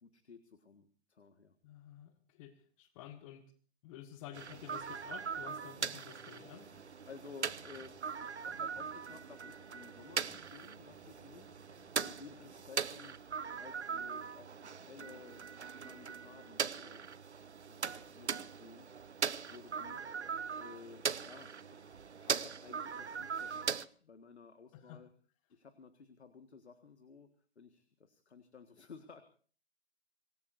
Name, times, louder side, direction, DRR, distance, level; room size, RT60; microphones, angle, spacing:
voice 1, 0.0-1.6 6.7-13.2 13.5-17.1 17.6-20.0 20.6-21.9 22.2-25.1 25.5-27.3 27.5-29.2, left 5 dB, 80° left, 9 dB, 1.8 m, -55 dB
voice 2, 1.6-3.5 3.8-6.7 24.7-25.0, left 10 dB, 30° left, 10 dB, 1.5 m, -51 dB
sound 1, 4.3-23.9, right 6 dB, 85° right, 0.9 m, -40 dB
sound 2, 4.9-12.7, left 1 dB, 5° left, 3.8 m, -67 dB
25.5 x 19.5 x 2.6 m, 0.43 s
figure-of-eight pair, 130°, 33 cm